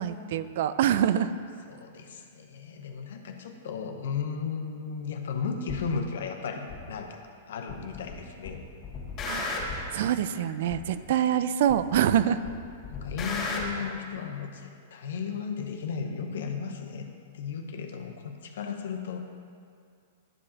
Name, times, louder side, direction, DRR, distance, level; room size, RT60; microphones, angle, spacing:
voice 1, 0.0-1.3 9.3-9.6 9.9-12.4, right 10 dB, 60° right, 13 dB, 0.4 m, -25 dB
voice 2, 1.7-8.6 12.9-17.1 17.3-19.2, left 6 dB, 70° left, 5 dB, 0.8 m, -35 dB
sound 1, 5.7-5.8 6.7-6.8 7.7-8.2 8.4-9.9 10.7-10.8 11.7-12.2 12.4-13.7, left 3 dB, 35° left, 2.0 m, -34 dB
12.0 x 7.5 x 2.9 m, 2.3 s
hypercardioid pair, 110°, 0 cm